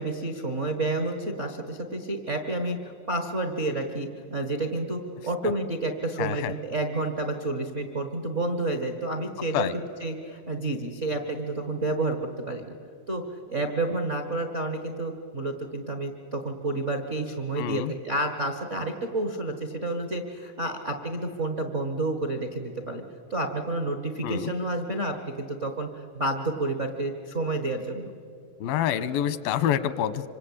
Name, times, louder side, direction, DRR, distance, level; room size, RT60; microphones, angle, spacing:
voice 1, 0.0-12.2 12.5-12.7 13.1-13.2 13.5-23.0 23.3-28.1, right 2 dB, 75° right, 4 dB, 0.6 m, -30 dB
voice 2, 6.2-6.5 9.5-9.7 17.6-17.9 24.2-24.5 28.6-30.3, left 10 dB, 85° left, 14 dB, 2.7 m, -27 dB
26.0 x 25.0 x 8.8 m, 2.4 s
omnidirectional pair, 4.2 m